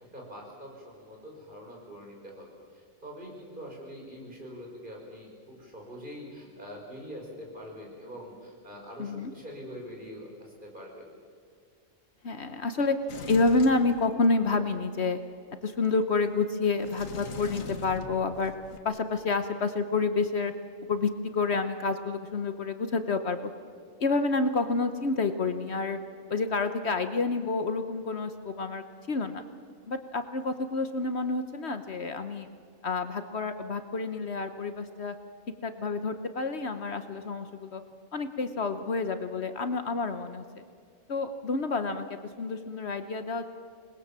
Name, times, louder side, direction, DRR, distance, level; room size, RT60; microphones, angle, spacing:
voice 1, 0.0-11.0, equal, 40° right, -2 dB, 6.0 m, -44 dB
voice 2, 9.0-9.3 12.2-13.0 13.3-15.2 15.6-18.5 18.8-20.5 20.9-23.5 24.0-26.0 26.3-29.4 29.9-32.5 32.8-35.1 35.6-37.8 38.1-40.6 41.1-43.4, left 3 dB, 55° left, 9 dB, 1.2 m, -29 dB
Sliding door, 13.1-14.6 16.8-18.8, left 5 dB, 85° left, 1.7 m, -42 dB
27.5 x 20.5 x 7.4 m, 2.1 s
omnidirectional pair, 1.4 m